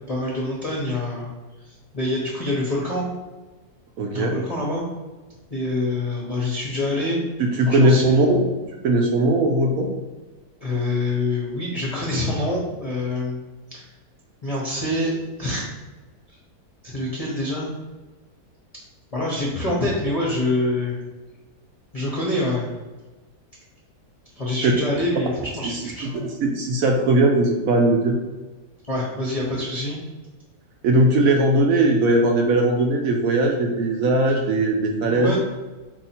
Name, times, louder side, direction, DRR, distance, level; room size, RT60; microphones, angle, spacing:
voice 1, 0.1-1.3 1.7-3.1 4.1-4.8 5.5-7.2 7.7-8.1 10.6-13.4 13.7-13.9 14.4-15.1 15.4-15.7 16.8-17.7 19.1-21.0 21.9-22.7 24.4-26.3 28.9-30.0 35.1-35.4, left 2 dB, 35° left, -5 dB, 0.5 m, -26 dB
voice 2, 4.0-4.4 7.6-8.5 8.8-9.9 25.6-25.8 26.4-28.1 30.8-35.3, right 2 dB, 70° right, 1 dB, 0.9 m, -19 dB
4.5 x 2.7 x 4.3 m, 1.2 s
omnidirectional pair, 1.8 m